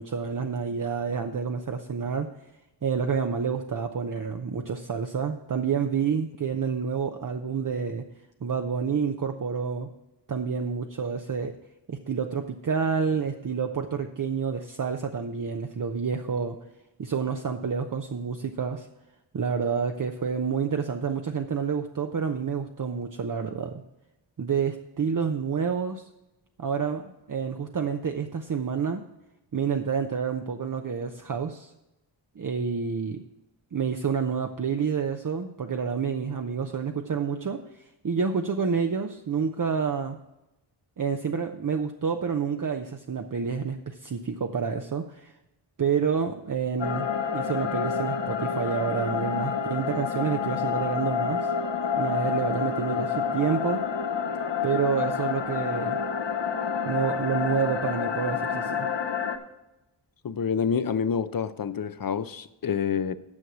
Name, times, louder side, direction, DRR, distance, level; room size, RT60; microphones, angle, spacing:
voice 1, 0.0-2.3 2.8-8.0 8.4-9.9 10.3-11.6 11.9-16.6 17.0-18.9 19.3-23.8 24.4-26.0 26.6-29.0 29.5-31.7 32.4-33.2 33.7-37.6 38.0-40.2 41.0-45.3 45.8-47.1 47.3-51.5 52.0-53.8 54.6-56.0 56.8-58.9, right 6 dB, 45° right, 0.7 m, -28 dB
sound 1, 46.8-59.4, left 6 dB, 65° left, 1.1 m, -28 dB
voice 2, 60.2-63.2, left 6 dB, 45° left, 0.6 m, -27 dB
9.7 x 6.4 x 6.1 m
wide cardioid pair, 80°, 47 cm